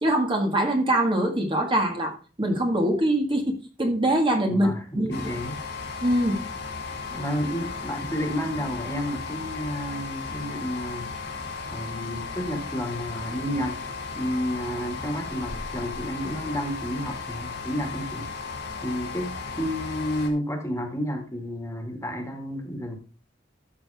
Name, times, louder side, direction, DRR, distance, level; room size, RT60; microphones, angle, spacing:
voice 1, 0.0-5.3 6.0-6.4, right 1 dB, 25° right, 2 dB, 1.8 m, -23 dB
voice 2, 4.5-5.6 7.1-11.1 11.7-13.8 14.1-18.3 18.8-22.9, equal, 15° left, 3 dB, 2.1 m, -31 dB
sound 1, 5.1-20.3, left 4 dB, 60° left, 2.5 m, -35 dB
13.0 x 6.7 x 3.5 m, 0.35 s
head